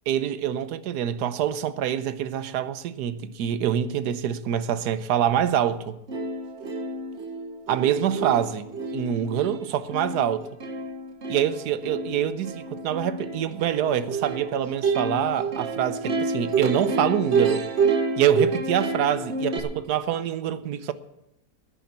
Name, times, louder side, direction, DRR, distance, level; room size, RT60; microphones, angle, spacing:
voice 1, 0.1-6.0 7.7-8.7 8.9-10.5 11.3-17.6 18.2-20.9, right 10 dB, 85° right, 1.3 m, -25 dB
Plucked string instrument, 5.7-5.8 6.1-19.6, right 4 dB, 45° right, 1.4 m, -28 dB
10.5 x 9.8 x 8.2 m
omnidirectional pair, 1.7 m